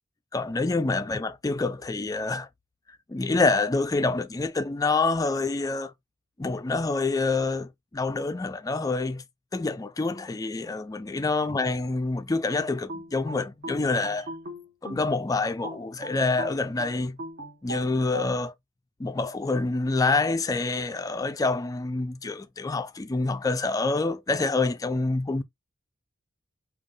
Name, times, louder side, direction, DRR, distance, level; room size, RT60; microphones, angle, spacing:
voice 1, 0.3-2.5 3.1-5.9 6.4-9.2 9.5-14.3 14.8-17.2 17.6-18.5 19.0-25.4, left 3 dB, 15° left, 0.3 m, -27 dB
sound 1, 12.5-15.1 15.6-18.3, right 1 dB, 50° right, 1.2 m, -39 dB
3.6 x 2.4 x 3.7 m
head